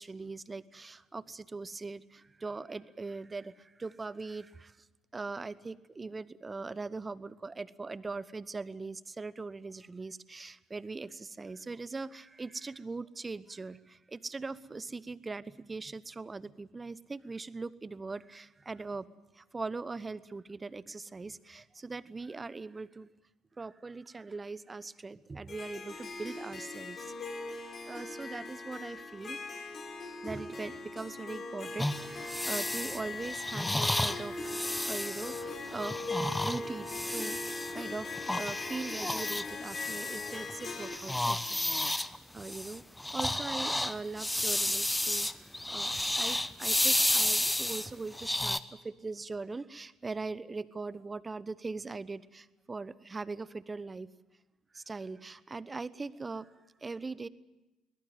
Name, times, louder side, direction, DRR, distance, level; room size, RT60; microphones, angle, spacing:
voice 1, 0.0-4.8 5.1-19.1 19.3-23.1 23.6-27.1 27.9-29.4 30.2-36.1 36.4-42.8 43.1-54.1 54.7-57.3, right 3 dB, 25° right, 17 dB, 1.0 m, -41 dB
Harp, 25.5-41.0, left 3 dB, 40° left, 4.7 m, -40 dB
sound 1, 31.8-37.7 38.1-40.5 40.8-48.6, left 1 dB, 10° left, 1.1 m, -32 dB
22.5 x 20.5 x 9.1 m, 1.1 s
hypercardioid pair, 55°, 0 cm